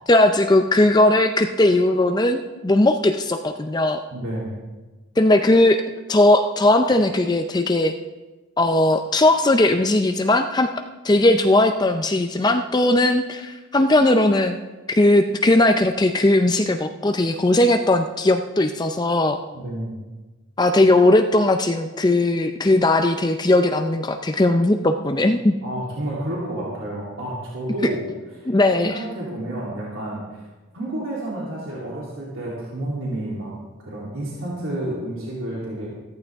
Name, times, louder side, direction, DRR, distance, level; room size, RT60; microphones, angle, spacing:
voice 1, 0.1-4.0 5.2-5.8 6.1-7.9 8.6-10.7 11.0-14.6 14.9-19.4 20.6-25.5 28.5-29.0, left 2 dB, 20° left, 7 dB, 0.5 m, -18 dB
voice 2, 4.1-4.6 19.5-20.0 25.6-28.0 28.4-28.5 28.8-30.4 30.7-33.5 33.8-35.9, right 1 dB, 90° right, -6 dB, 3.2 m, -30 dB
14.5 x 14.0 x 3.5 m, 1.2 s
head